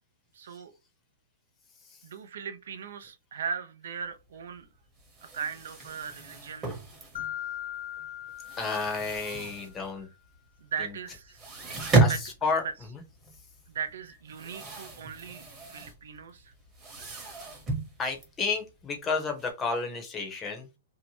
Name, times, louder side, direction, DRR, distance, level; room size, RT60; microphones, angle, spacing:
voice 1, 0.3-0.7 2.0-4.7 5.3-6.7 7.7-7.8 10.6-11.5 11.8-12.2 13.7-16.5, right 6 dB, 75° right, 0.5 m, -38 dB
sound 1, 4.3-4.4 4.6-4.7 5.0-7.6 7.9-10.0 10.3-10.4 10.8-10.9 11.2-19.5, right 3 dB, 20° right, 0.9 m, -32 dB
Mallet percussion, 7.1-9.7, left 12 dB, 85° left, 0.5 m, -39 dB
voice 2, 8.6-10.1 10.8-10.9 12.0-12.6 12.9-13.0 18.0-20.8, left 4 dB, 20° left, 0.7 m, -31 dB
2.7 x 2.1 x 2.9 m
hypercardioid pair, 150°, 0 cm